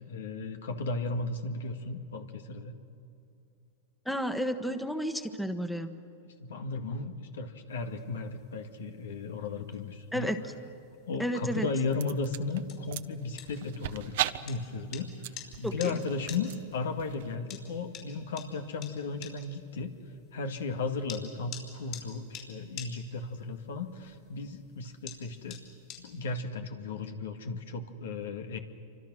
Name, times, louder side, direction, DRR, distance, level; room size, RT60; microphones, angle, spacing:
voice 1, 0.0-2.7 6.2-10.3 11.1-14.2 14.4-19.9 20.3-25.6 26.0-28.6, left 3 dB, 80° left, 6 dB, 2.0 m, -35 dB
voice 2, 4.0-5.9 10.1-10.4 11.2-11.7 15.6-15.9, equal, ahead, 8 dB, 1.4 m, -32 dB
sound 1, 7.7-26.3, left 9 dB, 50° left, 5.5 m, -50 dB
sound 2, 11.6-17.4, right 14 dB, 65° right, 0.8 m, -39 dB
28.0 x 25.0 x 6.3 m, 2.7 s
hypercardioid pair, 115°, 0 cm